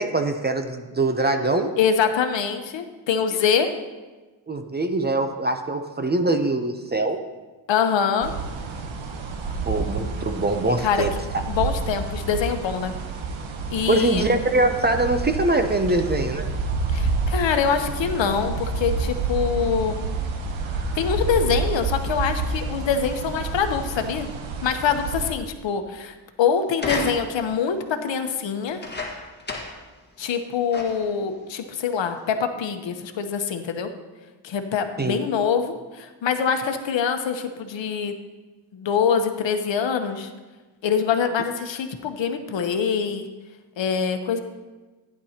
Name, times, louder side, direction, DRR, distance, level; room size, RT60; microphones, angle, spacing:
voice 1, 0.0-1.7 4.5-7.2 9.7-11.1 13.9-16.5 35.0-35.2, right 2 dB, 20° right, 6 dB, 0.7 m, -23 dB
voice 2, 1.8-3.7 7.7-8.3 10.8-11.1 11.5-12.9 13.7-14.3 16.9-20.0 20.9-24.3 24.6-28.8 30.2-33.9 34.4-38.1 38.7-40.3 40.8-43.3 43.8-44.4, left 7 dB, 65° left, 6 dB, 1.0 m, -24 dB
sound 1, 8.2-25.3, right 3 dB, 70° right, 1.1 m, -29 dB
sound 2, 26.7-27.5 28.6-29.9 30.3-30.4 30.7-31.2 31.9-32.0, left 3 dB, 20° left, 1.6 m, -32 dB
15.0 x 10.0 x 2.9 m, 1.2 s
wide cardioid pair, 125°, 47 cm